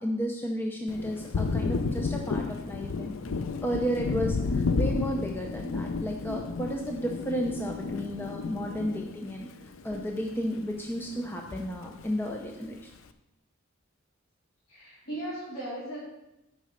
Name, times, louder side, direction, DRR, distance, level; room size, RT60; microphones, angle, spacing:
voice 1, 0.0-3.2 3.6-9.5 9.8-12.9, equal, 10° left, 1 dB, 0.6 m, -33 dB
Thunder, 0.9-10.6 11.0-12.1, left 4 dB, 65° left, 0.5 m, -32 dB
voice 2, 14.7-16.0, right 1 dB, 85° left, -8 dB, 3.2 m, -37 dB
9.5 x 5.3 x 5.1 m, 0.93 s
head